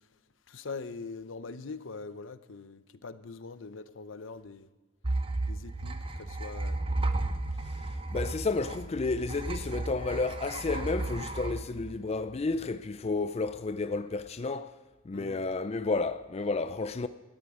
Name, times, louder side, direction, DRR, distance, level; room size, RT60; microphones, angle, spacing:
voice 1, 0.5-4.7 5.5-6.8 8.8-8.9 15.1-15.4, left 4 dB, 75° left, 0.7 m, -43 dB
sound 1, 5.0-12.6, right 2 dB, 30° right, 0.8 m, -34 dB
voice 2, 7.6-14.8 15.0-17.1, left 3 dB, 35° left, 0.4 m, -31 dB
18.0 x 13.0 x 4.9 m
head